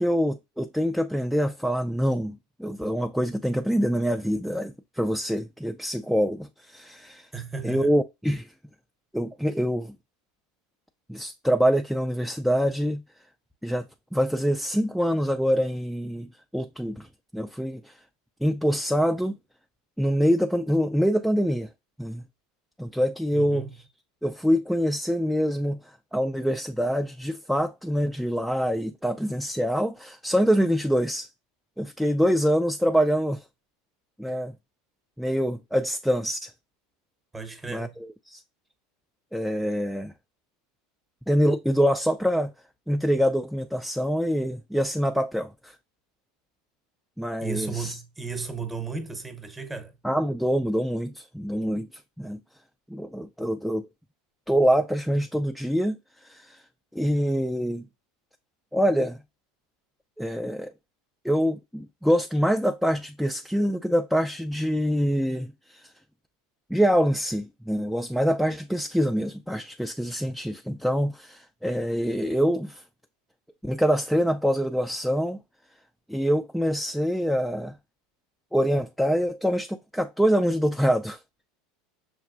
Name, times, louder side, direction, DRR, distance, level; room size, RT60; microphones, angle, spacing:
voice 1, 0.0-7.3 7.6-8.5 9.1-9.9 11.1-13.0 13.6-13.9 14.1-17.1 17.3-17.9 18.4-19.4 20.0-21.7 22.0-22.2 22.8-23.7 24.2-25.8 26.1-31.3 31.8-33.4 34.2-34.5 35.2-36.5 37.7-38.4 39.3-40.1 41.3-42.5 42.9-45.7 47.2-48.0 50.0-52.4 52.9-53.9 54.5-56.0 56.2-56.6 56.9-57.9 58.7-59.2 60.2-60.7 61.2-65.9 66.7-72.8 73.6-75.4 76.1-77.7 78.5-81.2, equal, ahead, 0.3 m, -25 dB
voice 2, 7.3-7.9 23.3-23.7 37.3-38.0 47.4-49.9, right 5 dB, 15° right, 0.9 m, -34 dB
6.1 x 2.3 x 2.4 m
hypercardioid pair, 85°, 0 cm